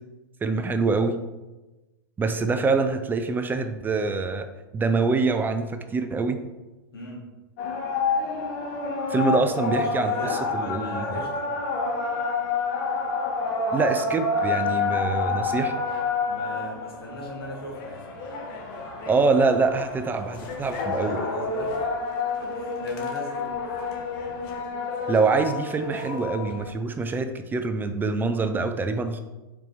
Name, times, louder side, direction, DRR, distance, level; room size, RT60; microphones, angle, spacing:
voice 1, 0.4-1.2 2.2-4.5 4.7-6.4 9.1-10.1 10.5-11.2 13.7-15.8 19.0-21.2 25.1-29.2, right 4 dB, 15° right, 8 dB, 0.5 m, -25 dB
sound 1, 7.6-26.7, left 4 dB, 55° left, 1.4 m, -29 dB
voice 2, 9.6-11.4 16.3-18.0 20.9-21.7 22.4-23.8, left 1 dB, 85° left, -2 dB, 1.6 m, -38 dB
5.1 x 4.5 x 4.7 m, 1.1 s
hypercardioid pair, 110°, 12 cm